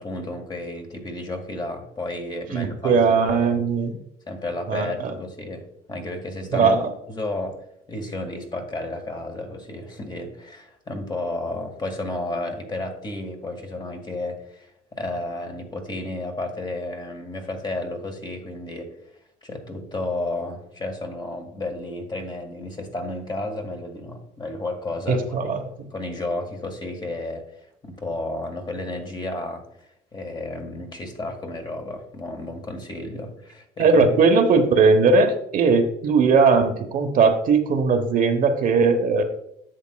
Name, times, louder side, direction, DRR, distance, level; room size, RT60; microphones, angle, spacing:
voice 1, 0.0-3.6 4.3-6.7 7.1-7.6 7.9-18.9 19.4-25.5 25.9-29.6 30.1-34.1, left 2 dB, 25° left, 4 dB, 1.6 m, -32 dB
voice 2, 2.5-4.0 4.7-5.1 6.5-6.9 25.1-25.9 33.8-39.2, right 4 dB, 55° right, 5 dB, 1.0 m, -19 dB
10.5 x 7.4 x 2.3 m, 0.77 s
cardioid pair, 110°, 17 cm